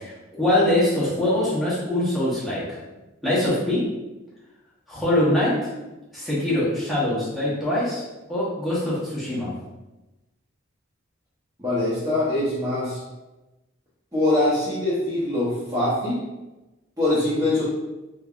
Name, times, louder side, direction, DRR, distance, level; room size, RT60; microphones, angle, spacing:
voice 1, 0.0-2.8 3.2-3.9 4.9-5.7 6.1-8.0 8.3-9.5, left 1 dB, ahead, -9 dB, 1.0 m, -23 dB
voice 2, 11.6-13.0 14.1-16.2 17.0-17.6, left 1 dB, 15° right, -11 dB, 0.7 m, -23 dB
3.3 x 3.3 x 2.4 m, 1.1 s
head